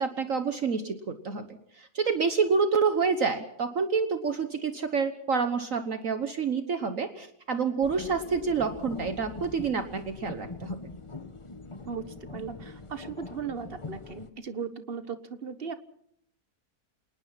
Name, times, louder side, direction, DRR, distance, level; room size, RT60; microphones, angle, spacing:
voice 1, 0.0-1.5 1.7-10.8, right 5 dB, 60° right, 8 dB, 1.6 m, -28 dB
sound 1, 7.8-14.3, left 3 dB, 25° left, 0.9 m, -42 dB
voice 2, 12.3-15.7, right 6 dB, 40° right, 11 dB, 1.5 m, -37 dB
27.5 x 19.0 x 5.8 m, 0.69 s
omnidirectional pair, 1.7 m